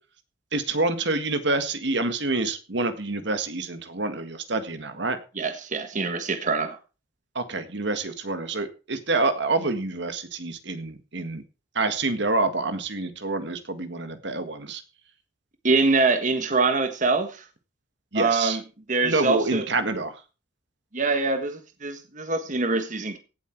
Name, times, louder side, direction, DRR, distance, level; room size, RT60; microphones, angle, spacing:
voice 1, 0.5-5.2 7.3-11.4 11.7-14.8 18.1-18.6 19.0-20.2, right 3 dB, 65° right, 1.8 m, -27 dB
voice 2, 5.4-6.8 15.6-17.4 18.1-18.6 18.9-19.6 20.9-23.2, right 3 dB, 40° right, 1.5 m, -24 dB
17.0 x 7.9 x 4.6 m
head